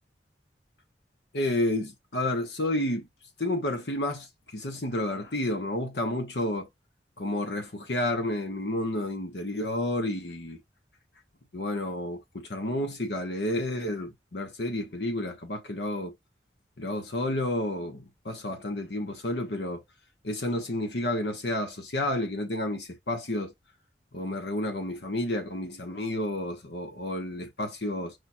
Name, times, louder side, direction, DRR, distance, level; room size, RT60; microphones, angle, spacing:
voice 1, 1.3-3.0 3.4-6.7 7.2-10.6 11.5-16.1 16.8-19.8 20.2-23.5 24.1-28.1, left 1 dB, 70° left, 1.1 m, -30 dB
4.9 x 2.4 x 4.3 m
head